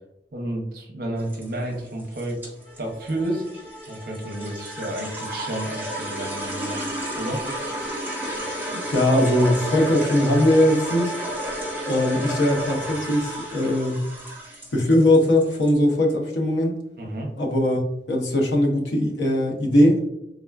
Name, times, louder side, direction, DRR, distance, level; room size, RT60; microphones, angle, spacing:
voice 1, 0.3-2.4 2.8-3.4 3.9-6.9 7.2-7.4 17.0-17.3, right 1 dB, 55° right, 1 dB, 0.6 m, -30 dB
sound 1, 1.2-15.7, right 1 dB, 10° right, 0.6 m, -33 dB
sound 2, 2.6-14.0, left 1 dB, 30° left, 0.8 m, -37 dB
voice 2, 8.8-11.2 11.9-14.0 14.7-16.7 17.4-20.0, left 1 dB, 90° left, 2 dB, 0.6 m, -20 dB
3.5 x 2.3 x 2.3 m, 0.86 s
head